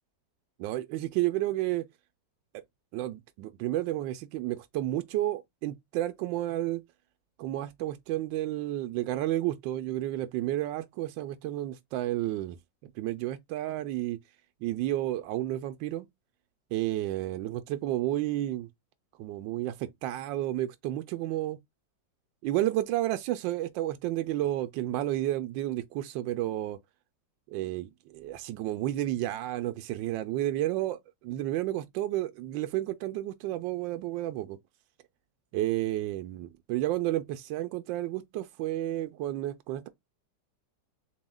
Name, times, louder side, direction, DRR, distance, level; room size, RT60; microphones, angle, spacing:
voice 1, 0.6-1.9 2.9-6.8 7.4-12.6 13.0-14.2 14.6-16.1 16.7-18.7 19.2-21.6 22.4-26.8 27.5-34.6 35.5-39.9, right 14 dB, 85° right, 1.3 m, -31 dB
7.1 x 2.7 x 2.3 m
omnidirectional pair, 2.0 m